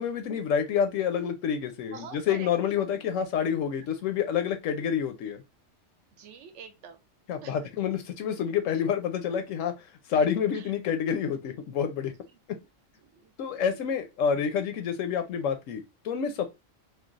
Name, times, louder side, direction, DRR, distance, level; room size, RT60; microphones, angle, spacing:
voice 1, 0.0-5.4 7.3-9.7 10.1-12.1 12.5-12.6 13.4-16.5, left 7 dB, 90° left, 1.0 m, -28 dB
voice 2, 1.9-2.8 6.1-7.0 7.4-7.6 10.5-10.7 12.2-12.4 13.0-13.8, right 6 dB, 70° right, 0.9 m, -47 dB
3.2 x 2.3 x 2.4 m
omnidirectional pair, 1.3 m